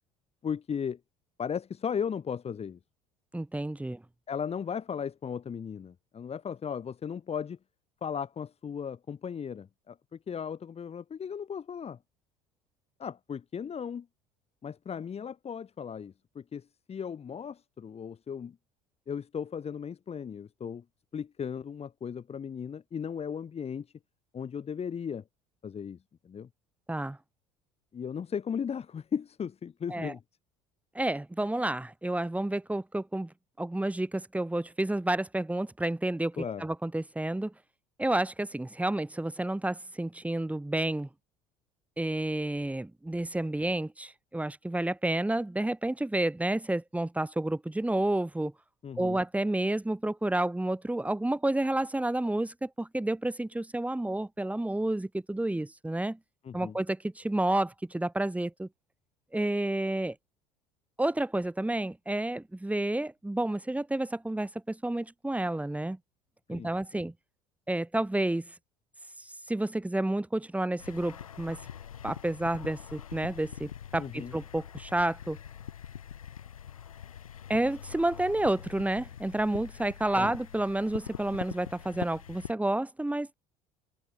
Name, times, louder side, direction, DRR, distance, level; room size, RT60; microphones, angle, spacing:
voice 1, 0.4-1.0 1.4-2.8 4.3-7.6 8.0-10.0 10.3-12.0 13.0-14.1 14.6-18.6 19.1-20.8 21.1-23.9 24.3-25.2 25.6-26.0 26.2-26.5 27.9-30.2 36.4-36.7 48.8-49.2 56.4-56.7 66.5-67.0 74.0-74.3 80.1-80.3, left 7 dB, 35° left, 5.7 m, -36 dB
voice 2, 3.3-4.0 26.9-27.2 29.9-30.1 31.0-33.3 33.6-37.5 38.0-41.1 42.0-48.5 49.0-56.2 56.5-58.7 59.3-60.2 61.0-66.0 66.5-67.1 67.7-68.5 69.5-71.6 72.0-75.4 77.5-83.3, right 1 dB, 10° right, 3.6 m, -30 dB
sound 1, 70.8-82.5, left 9 dB, 90° left, 1.9 m, -44 dB
hypercardioid pair, 65°, 17 cm